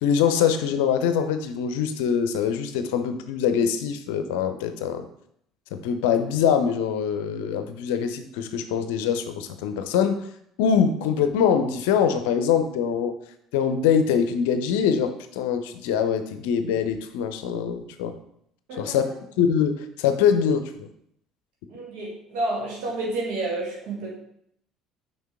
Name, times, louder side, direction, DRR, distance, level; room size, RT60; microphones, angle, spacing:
voice 1, 0.0-5.1 5.7-10.2 10.6-13.1 13.5-18.1 18.8-19.1 19.4-20.9, left 7 dB, 70° left, 9 dB, 0.5 m, -23 dB
voice 2, 21.7-24.1, right 2 dB, 65° right, -3 dB, 1.7 m, -30 dB
6.3 x 5.1 x 3.6 m, 0.72 s
figure-of-eight pair, 60°, 0 cm